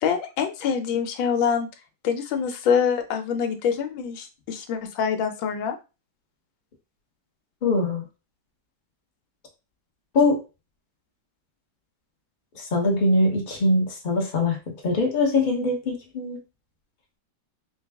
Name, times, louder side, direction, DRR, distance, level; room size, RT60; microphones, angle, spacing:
voice 1, 0.0-1.7 2.0-5.8, left 7 dB, 85° left, 6 dB, 1.4 m, -25 dB
voice 2, 7.6-8.0 10.1-10.4 12.5-14.6 14.8-16.4, left 2 dB, 35° left, 0 dB, 0.8 m, -22 dB
4.3 x 2.3 x 3.4 m, 0.30 s
omnidirectional pair, 2.1 m